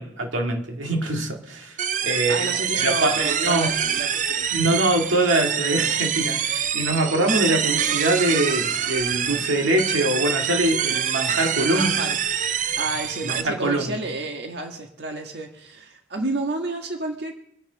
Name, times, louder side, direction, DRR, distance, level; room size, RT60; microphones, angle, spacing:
voice 1, 0.0-1.8 2.0-2.5 2.7-3.7 4.5-11.9 13.2-14.0, right 1 dB, 90° right, 2.2 m, -23 dB
sound 1, 1.8-13.4, right 8 dB, 40° right, 0.5 m, -25 dB
voice 2, 2.3-4.8 11.6-12.2 12.8-17.3, right 2 dB, 60° right, 1.7 m, -31 dB
25.5 x 9.8 x 4.0 m
head